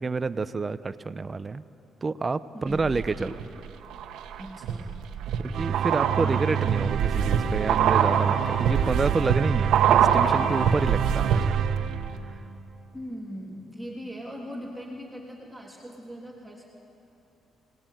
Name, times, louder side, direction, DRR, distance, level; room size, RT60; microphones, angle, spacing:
voice 1, 0.0-1.6 2.0-3.3 5.4-11.6 12.3-12.4, right 4 dB, 30° right, 13 dB, 0.8 m, -29 dB
voice 2, 2.5-3.0 4.4-5.0 6.1-6.4 12.9-16.6, equal, 5° right, -3 dB, 3.3 m, -40 dB
sound 1, 2.7-3.4 3.9-11.8 12.0-12.1, right 8 dB, 85° right, 1.4 m, -25 dB
sound 2, 5.5-12.6, right 8 dB, 70° right, 1.0 m, -28 dB
28.0 x 19.5 x 9.2 m, 3.0 s
cardioid pair, 90°, 0 cm